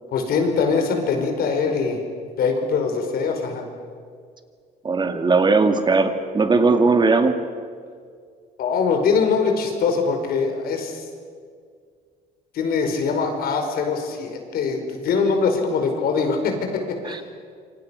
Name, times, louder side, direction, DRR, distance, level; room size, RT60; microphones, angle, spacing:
voice 1, 0.1-2.0 2.4-3.7 8.6-11.1 12.5-17.2, left 5 dB, 65° left, 5 dB, 5.2 m, -22 dB
voice 2, 4.8-7.4 17.0-17.2, right 3 dB, 25° right, 7 dB, 2.3 m, -18 dB
27.0 x 25.0 x 6.5 m, 2.1 s
cardioid pair, 110°, 17 cm